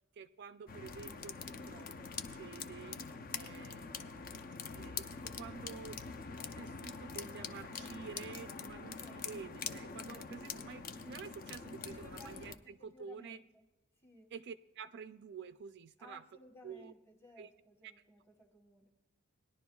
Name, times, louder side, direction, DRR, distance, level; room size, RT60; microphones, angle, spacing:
voice 1, 0.1-3.0 3.3-6.0 6.6-13.4 14.3-16.2 16.6-16.9 17.4-17.5 17.8-17.9, right 6 dB, 50° right, 10 dB, 0.4 m, -50 dB
sound 1, 0.7-12.6, left 5 dB, 40° left, 0.5 m, -45 dB
voice 2, 2.9-3.2 8.7-9.2 11.6-13.6 14.0-14.3 16.0-18.9, left 1 dB, 10° left, 2 dB, 1.2 m, -59 dB
19.0 x 11.0 x 2.3 m, 1.1 s
head